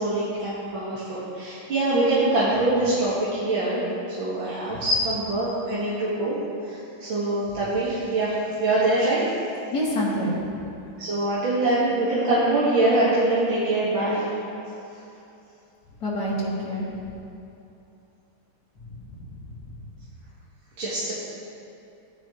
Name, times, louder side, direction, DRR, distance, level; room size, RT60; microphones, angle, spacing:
voice 1, 0.0-3.8 4.2-9.2 11.0-14.3 20.8-21.1, right 2 dB, 75° right, -10 dB, 2.5 m, -24 dB
voice 2, 9.7-10.3 16.0-16.9 19.1-19.5, equal, 50° left, -7 dB, 3.1 m, -27 dB
14.5 x 10.5 x 3.2 m, 2.8 s
omnidirectional pair, 2.2 m